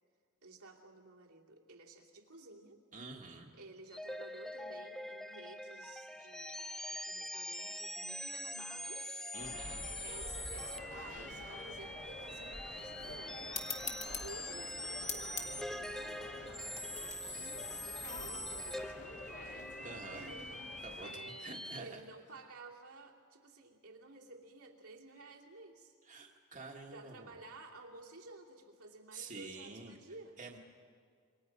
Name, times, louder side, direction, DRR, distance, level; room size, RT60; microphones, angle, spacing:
voice 1, 0.4-2.8 3.5-9.3 10.0-13.4 14.2-19.7 20.1-20.6 21.0-26.0 26.9-30.4, right 3 dB, 80° right, -2 dB, 2.8 m, -54 dB
voice 2, 2.9-3.5 9.3-9.8 19.8-20.2 20.8-21.1 21.4-22.0 26.1-27.3 29.1-30.0 30.4-30.6, right 3 dB, 35° right, 0 dB, 1.7 m, -48 dB
sound 1, 3.9-21.8, left 1 dB, ahead, 0.5 m, -44 dB
sound 2, 9.4-21.1, left 2 dB, 55° left, 2.3 m, -49 dB
sound 3, 13.5-18.6, left 6 dB, 35° left, 1.9 m, -45 dB
27.5 x 24.0 x 5.4 m, 2.1 s
head